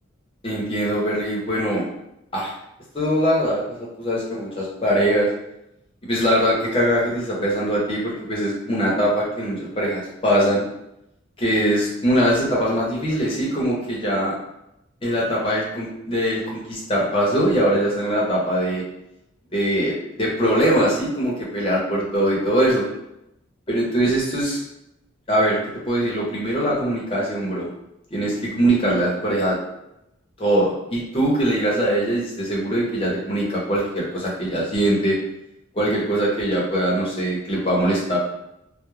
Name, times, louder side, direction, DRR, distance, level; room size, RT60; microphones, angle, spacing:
voice 1, 0.4-1.8 2.3-2.5 2.9-5.3 6.0-10.6 11.4-14.3 15.0-18.8 19.5-22.9 23.7-24.6 25.3-27.7 28.1-29.6 30.4-35.2 35.7-38.2, right 1 dB, 25° left, -4 dB, 0.7 m, -22 dB
2.3 x 2.0 x 3.1 m, 0.84 s
head